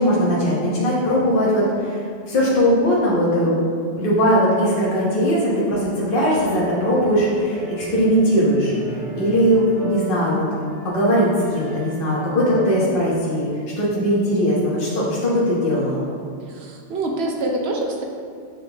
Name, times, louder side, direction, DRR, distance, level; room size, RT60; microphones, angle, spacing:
voice 1, 0.0-3.6 3.9-10.5 10.8-13.5 13.8-16.0, equal, 50° left, -7 dB, 1.2 m, -19 dB
sound 1, 6.0-12.7, right 2 dB, 30° right, 1.3 m, -37 dB
voice 2, 16.4-18.0, right 2 dB, 65° right, 0 dB, 0.9 m, -26 dB
7.4 x 3.8 x 3.4 m, 2.2 s
omnidirectional pair, 1.2 m